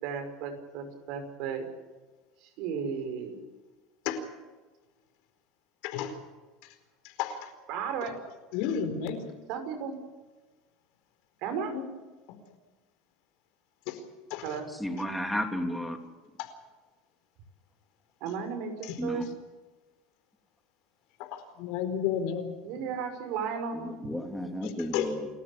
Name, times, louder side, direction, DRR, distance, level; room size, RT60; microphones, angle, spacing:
voice 1, 0.0-1.7 2.4-3.4 7.7-8.2 9.5-9.9 11.4-11.7 14.4-14.7 18.2-19.3 22.6-23.9, right 6 dB, 65° right, 7 dB, 5.6 m, -34 dB
voice 2, 5.8-6.1 6.6-6.7 7.0-7.5 8.5-9.3 11.6-11.9 13.9-14.0 14.3-14.6 16.4-16.5 18.8-19.0 21.2-22.5 24.6-25.1, left 8 dB, 70° left, 7 dB, 4.5 m, -33 dB
voice 3, 14.7-16.0 19.0-19.3 23.7-25.3, equal, 5° left, 4 dB, 3.3 m, -33 dB
29.5 x 13.5 x 8.5 m, 1.2 s
supercardioid pair, 115°, 0 cm